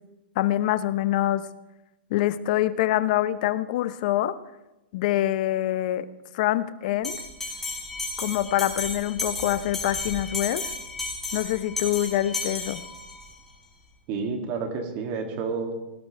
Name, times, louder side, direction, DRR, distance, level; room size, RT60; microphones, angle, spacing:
voice 1, 0.4-1.5 2.1-4.4 4.9-6.1 6.3-7.2 8.2-10.7 11.3-12.8, left 14 dB, 50° left, 14 dB, 0.8 m, -25 dB
Bell, 7.0-13.3, left 3 dB, 5° left, 4.9 m, -33 dB
voice 2, 14.1-15.8, right 4 dB, 40° right, 3 dB, 2.7 m, -30 dB
20.0 x 17.5 x 3.5 m, 0.99 s
hypercardioid pair, 145°, 6 cm